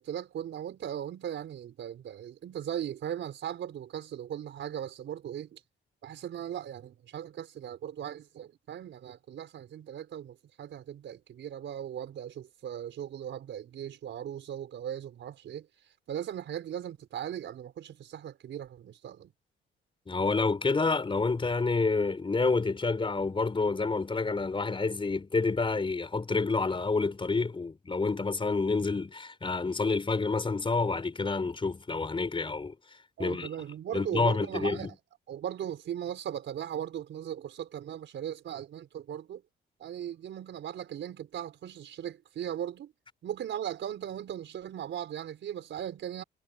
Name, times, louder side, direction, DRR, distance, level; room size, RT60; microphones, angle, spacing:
voice 1, 0.0-5.6 6.0-15.7 16.1-19.3 33.2-34.9 35.3-39.4 39.8-42.9 43.2-46.2, right 10 dB, 70° right, 4.8 m, -38 dB
voice 2, 20.1-32.7 33.2-33.5 33.9-34.9, left 3 dB, 25° left, 4.7 m, -28 dB
cardioid pair, 90°, 20 cm